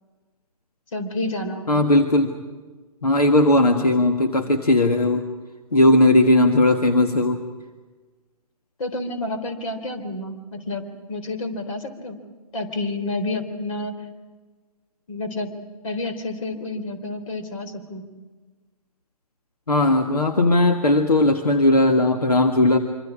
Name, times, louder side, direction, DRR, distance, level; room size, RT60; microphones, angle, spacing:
voice 1, 0.9-1.8 8.8-12.2 12.5-14.1 15.1-15.5 15.8-18.1, left 2 dB, 60° left, 8 dB, 3.8 m, -29 dB
voice 2, 1.7-2.3 3.0-5.3 5.7-7.4 19.7-22.8, left 1 dB, 85° left, 4 dB, 1.6 m, -17 dB
26.0 x 25.5 x 5.0 m, 1.3 s
figure-of-eight pair, 120°, 19 cm